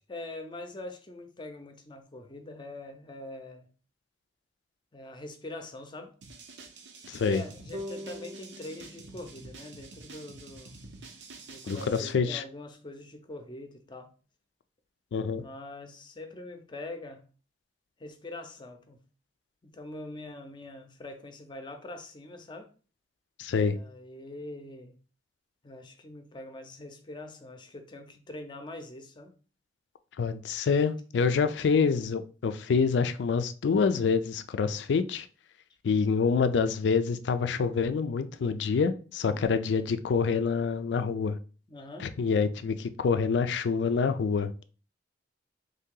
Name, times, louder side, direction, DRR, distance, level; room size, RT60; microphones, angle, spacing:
voice 1, 0.0-3.7 4.9-6.1 7.3-10.7 11.5-14.1 15.3-17.3 18.0-19.0 19.6-22.7 23.6-25.0 25.6-29.3 39.2-39.6 41.7-42.1, left 2 dB, 25° left, 0.6 m, -43 dB
sound 1, 6.2-12.1, right 3 dB, 80° right, 0.6 m, -48 dB
voice 2, 7.1-7.4 11.7-12.4 15.1-15.4 23.4-23.8 30.2-35.3 35.8-41.4 42.0-44.6, left 5 dB, 80° left, 0.4 m, -26 dB
sound 2, 7.7-11.0, equal, 35° right, 0.6 m, -45 dB
3.2 x 2.7 x 3.7 m
head